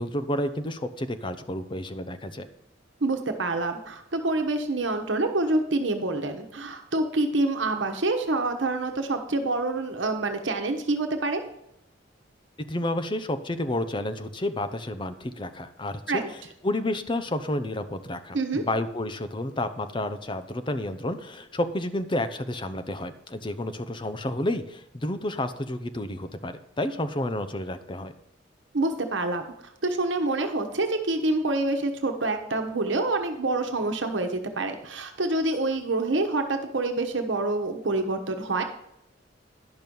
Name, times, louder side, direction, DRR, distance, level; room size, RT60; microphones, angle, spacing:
voice 1, 0.0-2.5 12.7-28.1, left 1 dB, 25° left, 10 dB, 0.7 m, -30 dB
voice 2, 3.0-11.4 16.1-16.3 18.3-18.6 28.7-29.4 29.8-38.6, right 2 dB, 80° right, 6 dB, 1.1 m, -27 dB
11.0 x 6.2 x 5.4 m, 0.82 s
head